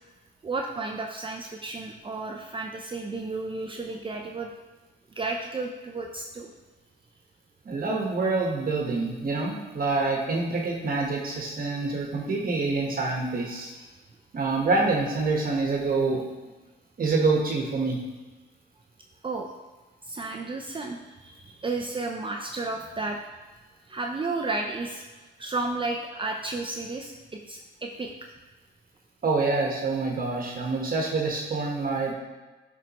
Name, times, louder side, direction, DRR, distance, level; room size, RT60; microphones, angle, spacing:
voice 1, 0.4-4.5 5.1-6.5 19.2-19.5 20.0-23.2 23.9-28.1, right 3 dB, 25° right, 2 dB, 0.6 m, -33 dB
voice 2, 7.6-13.7 14.3-16.2 17.0-18.0 29.2-32.1, right 3 dB, 45° right, -1 dB, 1.3 m, -26 dB
9.1 x 4.5 x 3.0 m, 1.2 s
cardioid pair, 90°, 20 cm